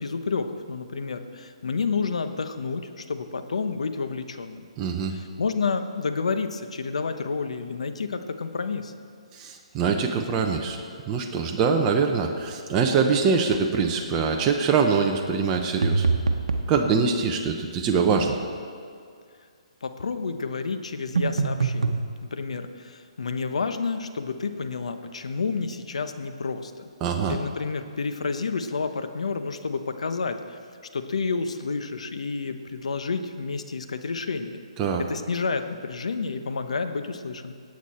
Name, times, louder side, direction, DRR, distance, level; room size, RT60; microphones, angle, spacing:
voice 1, 0.0-4.7 5.1-8.9 19.8-26.9 27.3-30.6 30.9-34.6 35.1-37.5, left 4 dB, 80° left, 8 dB, 1.0 m, -30 dB
voice 2, 4.8-5.1 9.3-10.8 11.1-16.0 16.7-18.3 27.0-27.4 34.8-35.0, right 5 dB, 25° right, 2 dB, 0.9 m, -23 dB
sound 1, 15.8-16.7 21.1-22.0, right 4 dB, 90° right, 1.0 m, -23 dB
18.0 x 8.3 x 4.4 m, 2.2 s
hypercardioid pair, 150°, 3 cm